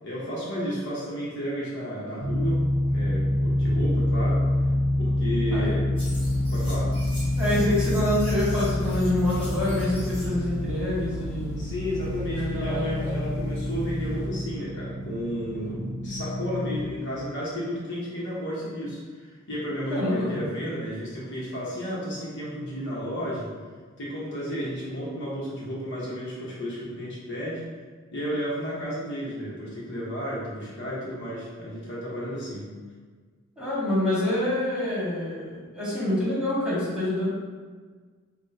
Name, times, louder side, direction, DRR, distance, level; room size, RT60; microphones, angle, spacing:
voice 1, 0.0-2.6 2.8-4.4 5.0-5.8 6.5-6.9 11.6-23.5 24.0-27.6 28.1-32.7, equal, 60° left, -6 dB, 1.0 m, -32 dB
sound 1, 2.2-16.9, left 1 dB, 45° right, 0.7 m, -27 dB
sound 2, 6.0-14.3, equal, 25° left, 1.3 m, -37 dB
voice 2, 7.4-11.6 12.3-13.0 19.9-20.4 33.6-37.3, left 1 dB, 5° right, -9 dB, 1.4 m, -26 dB
6.1 x 2.2 x 2.6 m, 1.5 s
head